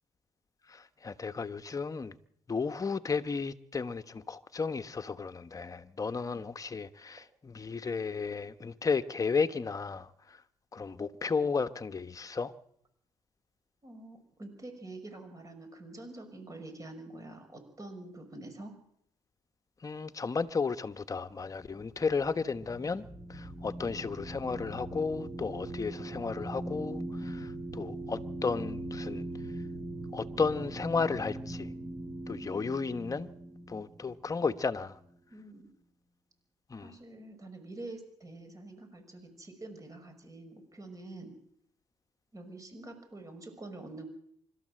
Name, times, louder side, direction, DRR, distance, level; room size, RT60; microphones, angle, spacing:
voice 1, 0.7-2.1 2.5-10.4 10.7-12.5 19.8-29.2 30.1-31.7 32.3-33.3 33.7-35.0 36.7-37.0, left 5 dB, 30° left, 1.2 m, -33 dB
voice 2, 13.8-18.7 32.4-32.7 35.3-35.7 36.8-41.3 42.3-44.1, right 2 dB, 30° right, 5.8 m, -46 dB
sound 1, 21.6-35.1, right 1 dB, 15° right, 2.0 m, -41 dB
25.0 x 13.5 x 7.8 m
cardioid pair, 90°, 11 cm